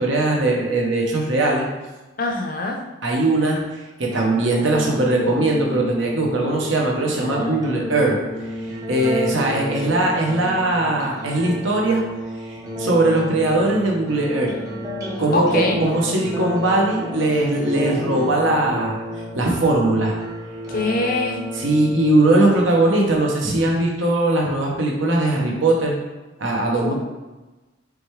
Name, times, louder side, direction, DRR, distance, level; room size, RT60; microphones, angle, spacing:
voice 1, 0.0-1.7 3.0-8.2 8.9-12.0 12.4-14.5 15.2-19.0 19.3-20.2 21.6-26.0 26.4-26.9, right 2 dB, 75° right, -1 dB, 1.0 m, -20 dB
voice 2, 2.2-2.8 15.3-15.8 20.7-21.4 26.8-26.9, left 2 dB, 45° left, 2 dB, 0.6 m, -23 dB
sound 1, 4.1-23.1, equal, 15° right, 0.7 m, -31 dB
4.9 x 3.2 x 3.2 m, 1.1 s
head